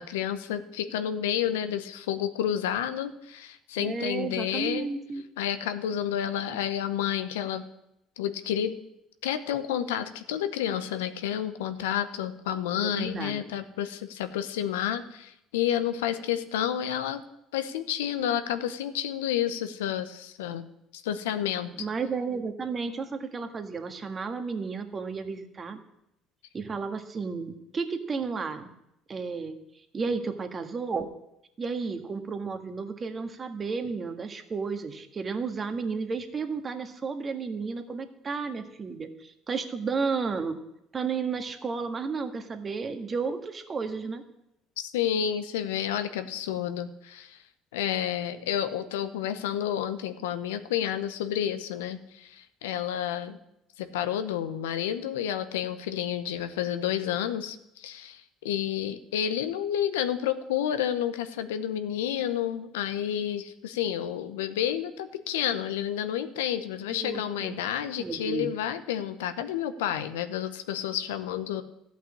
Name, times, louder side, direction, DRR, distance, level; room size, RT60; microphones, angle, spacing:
voice 1, 0.0-4.9 5.4-7.7 8.2-8.7 9.2-17.2 17.5-20.7 20.9-21.7 44.8-47.4 47.7-53.4 53.8-71.6, left 10 dB, 85° left, 11 dB, 0.8 m, -30 dB
voice 2, 3.8-5.2 6.5-6.6 12.8-13.5 21.8-25.8 26.5-28.7 29.1-31.1 31.6-40.6 40.9-44.2 66.9-67.6 68.0-68.5, right 5 dB, 35° right, 6 dB, 1.7 m, -33 dB
14.0 x 5.8 x 8.5 m, 0.83 s
hypercardioid pair, 65°, 0 cm